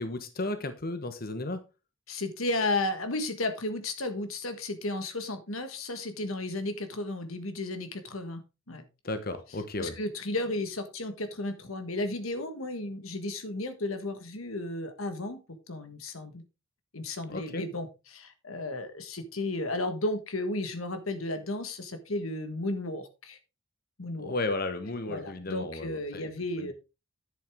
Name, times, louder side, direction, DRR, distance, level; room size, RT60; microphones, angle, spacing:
voice 1, 0.0-1.6 9.0-9.9 17.3-17.6 24.2-26.3 26.6-26.7, left 2 dB, 45° left, 1.2 m, -34 dB
voice 2, 2.1-8.8 9.8-16.4 16.9-23.4 24.0-24.3 25.1-26.7, left 2 dB, 90° left, 1.6 m, -34 dB
10.5 x 8.0 x 3.6 m
head